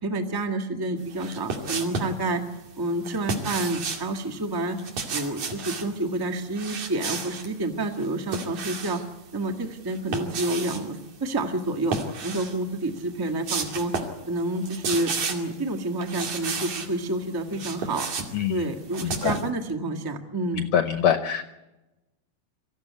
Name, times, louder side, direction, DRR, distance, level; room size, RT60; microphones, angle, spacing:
voice 1, 0.0-2.4 2.8-4.8 5.1-9.0 9.3-12.0 12.2-13.9 14.3-18.1 18.5-20.7, right 2 dB, 20° right, 4 dB, 0.6 m, -29 dB
sound 1, 1.1-2.2 3.0-4.1 4.7-5.9 6.5-7.5 7.9-9.1 9.9-10.8 11.8-12.6 13.0-13.1 13.4-14.2 14.5-15.5 16.0-16.9 17.3-19.5, right 4 dB, 55° right, 3.6 m, -32 dB
voice 2, 18.3-18.6 19.0-19.3 20.5-21.4, left 9 dB, 70° left, 9 dB, 1.7 m, -24 dB
25.5 x 15.5 x 9.5 m, 1.0 s
omnidirectional pair, 4.0 m